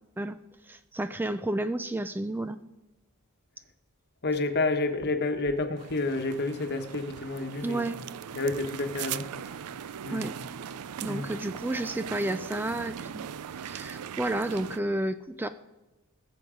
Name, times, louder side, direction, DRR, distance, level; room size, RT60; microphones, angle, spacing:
voice 1, 0.6-2.6 7.6-8.0 10.1-10.3 11.0-13.3 13.6-15.5, right 1 dB, 10° right, 11 dB, 0.3 m, -31 dB
voice 2, 4.2-7.8 8.4-9.6 10.0-10.3 11.1-11.3, left 3 dB, 50° left, 7 dB, 1.1 m, -29 dB
sound 1, 5.8-14.8, right 8 dB, 85° right, 0.4 m, -39 dB
19.5 x 7.7 x 5.0 m, 1.1 s
head